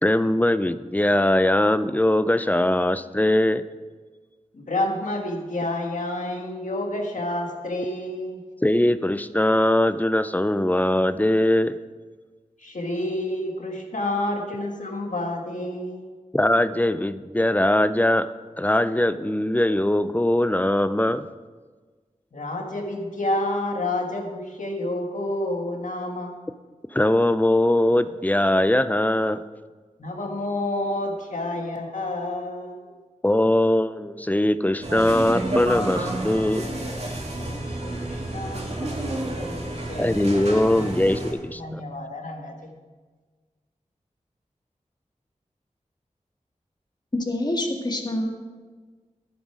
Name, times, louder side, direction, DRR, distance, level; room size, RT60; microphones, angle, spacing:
voice 1, 0.0-3.6 8.6-11.8 16.3-18.3 18.6-21.3 26.9-29.4 33.2-36.7 40.0-41.8, left 1 dB, 10° left, 13 dB, 0.5 m, -21 dB
voice 2, 4.5-8.4 12.6-16.1 22.3-26.3 30.0-33.0 37.3-40.2 40.7-40.9 41.6-42.7, left 1 dB, 75° left, 2 dB, 1.7 m, -29 dB
sound 1, 34.8-41.3, right 1 dB, 55° right, 2.4 m, -30 dB
voice 3, 47.1-48.4, left 1 dB, 35° left, 2 dB, 1.9 m, -26 dB
11.0 x 10.5 x 4.9 m, 1.4 s
wide cardioid pair, 60°, 13 cm